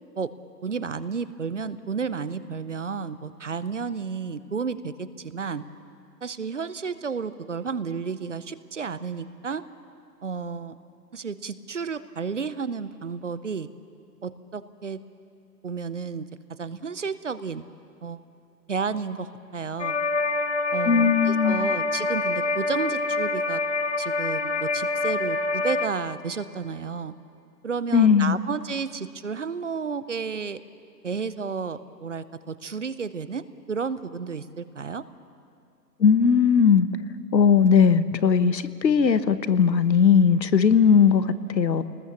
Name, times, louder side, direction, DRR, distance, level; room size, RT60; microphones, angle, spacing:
voice 1, 0.6-5.6 6.2-9.6 10.2-10.7 11.1-13.7 14.2-15.0 15.6-16.3 16.6-17.6 18.0-18.2 18.7-20.0 20.7-23.6 24.0-27.1 27.6-30.6 31.0-35.0, right 5 dB, 45° right, 14 dB, 0.8 m, -32 dB
sound 1, 19.8-25.9, left 3 dB, 45° left, 1.3 m, -26 dB
voice 2, 20.8-21.7 27.9-28.4 36.0-36.9 37.3-41.8, left 6 dB, 85° left, 13 dB, 1.3 m, -19 dB
26.0 x 20.0 x 7.1 m, 2.4 s
hypercardioid pair, 170°, 50 cm